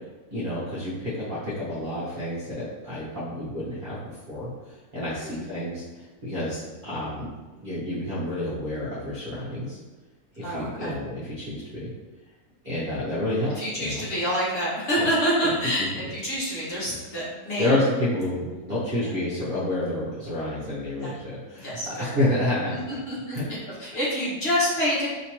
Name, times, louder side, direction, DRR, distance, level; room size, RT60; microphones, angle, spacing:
voice 1, 0.3-4.5 4.9-9.8 10.4-11.9 12.6-14.0 15.0-15.1 15.4-15.5 17.6-23.0 23.3-23.5, left 1 dB, 40° right, -11 dB, 1.0 m, -29 dB
voice 2, 10.4-10.9 13.5-17.7 19.0-19.1 21.0-21.1 21.6-22.1 22.7-23.4 23.8-25.1, equal, 45° left, -7 dB, 1.4 m, -27 dB
3.2 x 3.0 x 2.9 m, 1.2 s
omnidirectional pair, 1.5 m